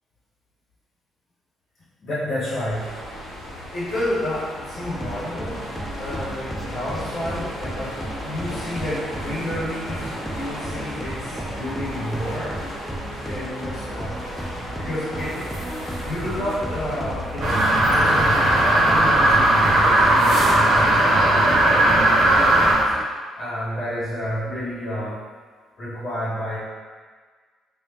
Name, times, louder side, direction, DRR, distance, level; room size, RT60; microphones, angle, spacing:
voice 1, 2.0-3.2 3.5-5.7 6.0-10.0 10.3-12.6 13.2-14.3 14.8-15.4 16.0-22.9 23.4-25.2 25.8-26.6, left 1 dB, 45° left, -10 dB, 1.1 m, -30 dB
sound 1, 2.7-20.3, left 1 dB, 90° left, 1.2 m, -36 dB
sound 2, 4.8-23.0, right 1 dB, 5° left, 0.5 m, -34 dB
sound 3, 17.4-22.7, right 1 dB, 55° right, 0.7 m, -17 dB
4.7 x 2.5 x 2.6 m, 1.5 s
figure-of-eight pair, 45°, 0 cm